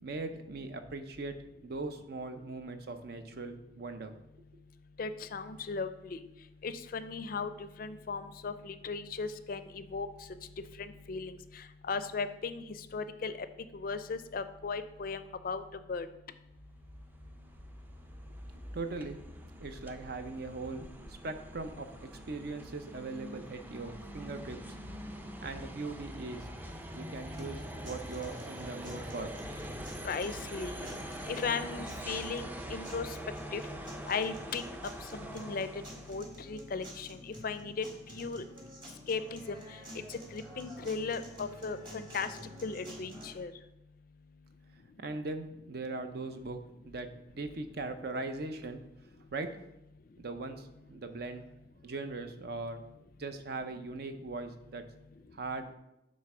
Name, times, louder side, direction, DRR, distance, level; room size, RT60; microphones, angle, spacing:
voice 1, 0.0-1.3 1.6-4.1 18.3-18.4 18.7-19.2 19.6-24.6 25.4-26.5 26.9-29.7 45.0-47.1 47.3-48.8 49.3-49.5 50.2-51.5 51.8-52.8 53.2-54.8 55.3-55.7, right 3 dB, 60° right, 8 dB, 0.6 m, -40 dB
voice 2, 5.0-6.2 6.6-10.1 10.8-12.6 12.9-13.3 13.7-15.6 15.9-16.1 30.0-31.0 31.3-33.1 33.5-33.6 34.1-34.6 35.1-35.7 36.1-38.4 39.1-39.6 40.1-42.3 42.6-43.5, left 4 dB, 55° left, 12 dB, 0.4 m, -37 dB
sound 1, 16.5-36.3, equal, 10° right, 0.5 m, -44 dB
sound 2, 27.3-43.3, equal, 25° right, 1.4 m, -50 dB
7.9 x 3.2 x 6.0 m, 0.89 s
head